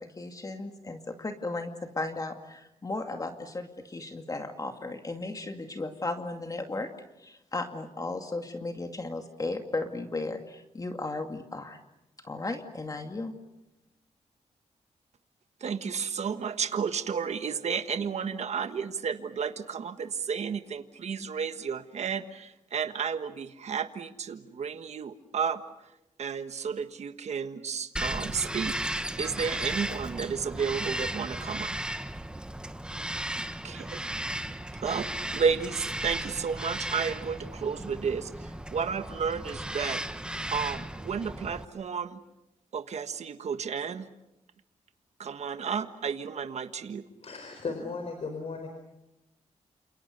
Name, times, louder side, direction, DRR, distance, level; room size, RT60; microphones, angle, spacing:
voice 1, 0.0-6.9 7.2-11.8 12.2-13.3, left 2 dB, 30° left, 5 dB, 2.3 m, -35 dB
voice 2, 15.6-25.6 26.2-28.8 29.2-31.8 33.6-34.0 34.8-40.0 40.5-42.2 42.7-44.1 45.2-47.0, right 6 dB, 65° right, 9 dB, 1.5 m, -32 dB
Bird vocalization bird call bird song, 28.0-41.7, right 1 dB, 5° right, 1.2 m, -35 dB
voice 3, 47.2-48.7, left 4 dB, 55° left, 5 dB, 4.9 m, -36 dB
29.5 x 28.0 x 6.7 m, 0.91 s
cardioid pair, 100°, 12 cm